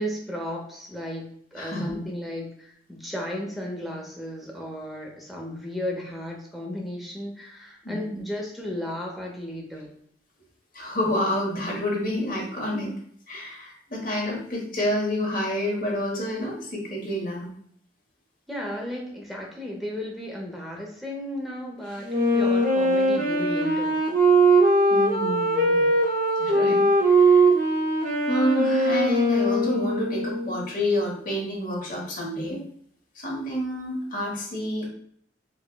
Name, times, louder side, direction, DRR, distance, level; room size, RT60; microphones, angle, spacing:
voice 1, 0.0-9.9 18.5-24.0, left 1 dB, ahead, -1 dB, 0.6 m, -34 dB
voice 2, 1.6-1.9 7.8-8.2 10.7-12.9 13.3-17.5 24.9-25.9 26.4-27.5 28.2-32.6 33.1-34.9, left 1 dB, 50° left, -3 dB, 1.1 m, -29 dB
Wind instrument woodwind instrument, 22.1-30.6, right 2 dB, 50° right, 0.5 m, -21 dB
4.8 x 2.1 x 2.2 m, 0.64 s
head